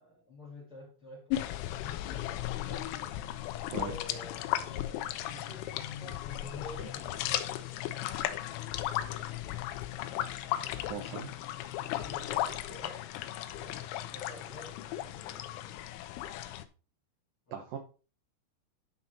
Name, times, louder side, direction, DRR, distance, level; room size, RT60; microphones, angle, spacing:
voice 1, 0.0-3.3 3.8-8.2 11.7-13.1 13.5-15.9 17.5-17.6, left 1 dB, 35° left, 2.5 m, -50 dB
sound 1, 1.3-16.6, left 13 dB, 80° left, 3.2 m, -36 dB
voice 2, 3.7-4.0 10.7-11.3 17.5-17.8, right 7 dB, 70° right, 2.1 m, -40 dB
12.0 x 5.8 x 4.2 m
omnidirectional pair, 5.7 m